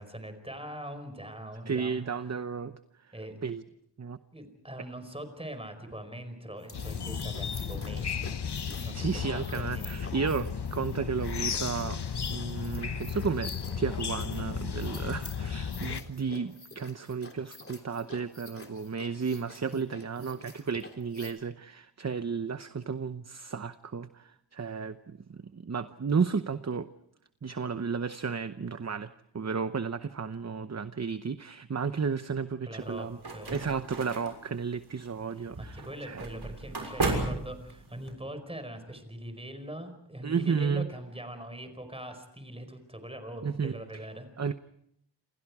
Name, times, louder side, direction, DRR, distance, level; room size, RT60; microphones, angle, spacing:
voice 1, 0.0-2.1 3.1-3.4 4.3-8.4 8.8-10.2 19.7-19.8 32.7-33.7 35.3-44.3, right 1 dB, 15° right, 9 dB, 4.9 m, -42 dB
voice 2, 1.7-2.8 3.4-3.6 4.0-4.2 8.9-26.9 27.4-33.2 33.5-36.3 40.2-40.9 43.4-43.8 44.4-44.5, right 5 dB, 40° right, 11 dB, 0.9 m, -33 dB
sound 1, 6.6-21.3, left 2 dB, 30° left, 3.5 m, -49 dB
sound 2, 6.7-16.0, left 6 dB, 70° left, 1.4 m, -34 dB
sound 3, 32.8-38.1, right 3 dB, 65° right, 6.4 m, -35 dB
28.5 x 28.0 x 4.9 m, 0.71 s
wide cardioid pair, 105°, 42 cm